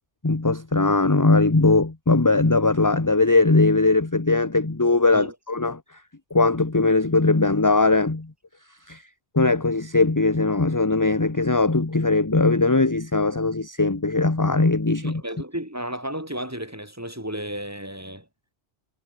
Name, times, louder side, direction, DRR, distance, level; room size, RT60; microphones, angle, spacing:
voice 1, 0.2-5.8 6.3-8.3 8.9-9.0 9.3-15.2, left 3 dB, 15° left, 1.1 m, -20 dB
voice 2, 15.0-18.2, equal, 15° right, 3.5 m, -33 dB
omnidirectional pair, 1.1 m